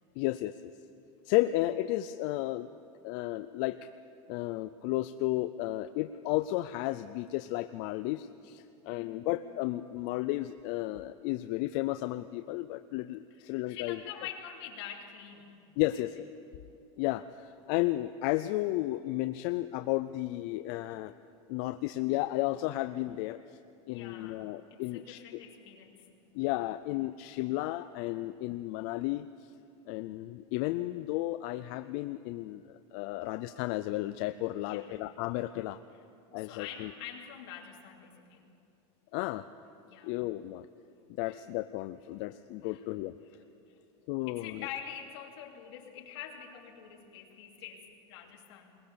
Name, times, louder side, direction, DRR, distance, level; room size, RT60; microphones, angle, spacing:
voice 1, 0.2-0.7 1.3-2.7 3.0-3.9 4.3-14.0 15.8-16.3 17.0-21.1 21.5-23.4 23.9-25.2 26.3-29.3 29.9-35.8 36.3-36.9 39.1-39.4 40.0-40.7 41.1-43.1 44.1-44.7, left 17 dB, 40° left, 11 dB, 0.4 m, -33 dB
voice 2, 8.9-9.3 13.3-15.6 15.9-16.0 23.9-26.1 34.6-34.9 35.9-36.0 36.4-38.5 39.9-40.2 41.2-41.4 42.6-42.9 43.2-43.4 43.7-43.8 44.3-48.8, left 9 dB, 60° left, 0 dB, 2.8 m, -46 dB
21.5 x 20.5 x 6.9 m, 2.6 s
supercardioid pair, 170°, 15 cm